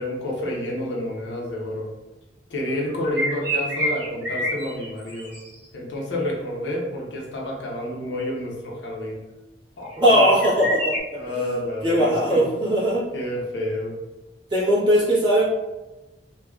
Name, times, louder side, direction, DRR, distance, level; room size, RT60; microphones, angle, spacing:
voice 1, 0.0-1.9 2.5-5.4 5.7-9.2 9.8-10.4 11.1-12.5 13.1-14.0, left 1 dB, 85° left, -2 dB, 0.8 m, -29 dB
sound 1, 3.0-5.6 9.9-11.0, equal, 70° right, 1.0 m, -28 dB
voice 2, 10.0-10.9 11.3-11.6 11.8-13.1 14.5-15.4, equal, 25° right, -8 dB, 1.0 m, -19 dB
3.3 x 2.2 x 2.3 m, 1.1 s
head